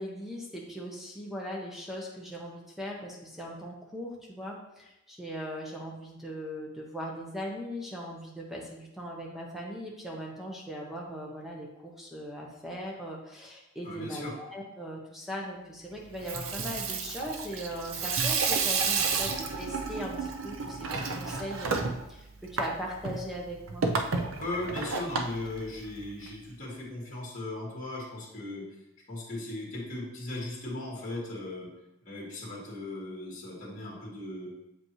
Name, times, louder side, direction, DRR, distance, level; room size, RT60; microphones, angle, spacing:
voice 1, 0.0-21.8 22.1-23.9, equal, ahead, -3 dB, 0.9 m, -39 dB
voice 2, 13.8-14.3 24.4-28.6 29.1-31.7 32.0-34.5, left 1 dB, 35° left, -5 dB, 2.0 m, -37 dB
Water tap faucet / Sink (filling or washing), 16.1-26.3, right 4 dB, 75° right, 0.6 m, -32 dB
7.7 x 5.1 x 3.1 m, 0.89 s
head